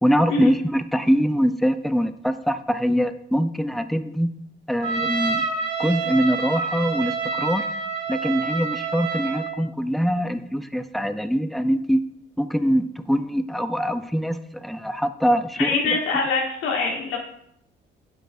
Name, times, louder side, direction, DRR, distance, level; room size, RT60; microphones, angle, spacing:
voice 1, 0.0-4.3 4.7-5.5 5.8-7.6 8.1-12.0 12.4-16.0, equal, ahead, 10 dB, 0.4 m, -23 dB
Trumpet, 4.8-9.6, right 5 dB, 60° right, 2.3 m, -27 dB
voice 2, 15.6-17.2, left 4 dB, 85° left, 0 dB, 1.4 m, -23 dB
7.6 x 5.1 x 2.6 m, 0.72 s
cardioid pair, 90°, 20 cm